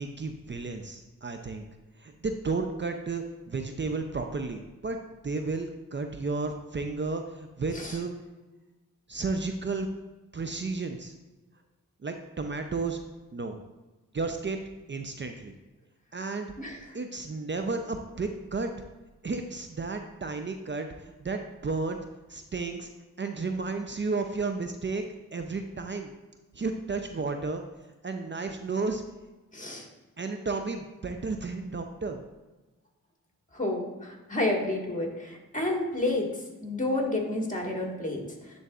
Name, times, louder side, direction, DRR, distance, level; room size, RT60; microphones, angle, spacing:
voice 1, 0.0-1.6 2.0-5.0 5.2-8.1 9.1-9.9 10.3-11.1 12.0-13.0 13.3-13.6 14.1-15.5 16.1-16.5 16.9-18.7 19.2-22.0 22.3-22.9 23.2-25.0 25.3-26.1 26.5-27.6 28.0-29.0 30.2-32.2, right 3 dB, 35° right, 5 dB, 0.6 m, -32 dB
voice 2, 29.5-29.8 33.5-36.3 36.6-38.2, left 2 dB, 20° left, 0 dB, 1.8 m, -30 dB
10.0 x 4.0 x 2.4 m, 1.2 s
supercardioid pair, 40°, 34 cm